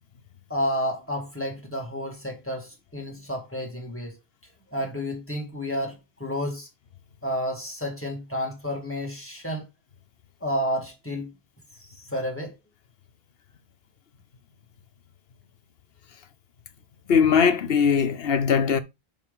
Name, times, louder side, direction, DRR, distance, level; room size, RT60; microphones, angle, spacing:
voice 1, 0.5-4.1 4.7-6.7 7.2-9.7 10.4-11.3 11.8-12.6, equal, 10° left, 2.1 m, -30 dB
voice 2, 17.1-18.8, left 6 dB, 70° left, 1.0 m, -20 dB
7.3 x 5.4 x 3.7 m
omnidirectional pair, 1.0 m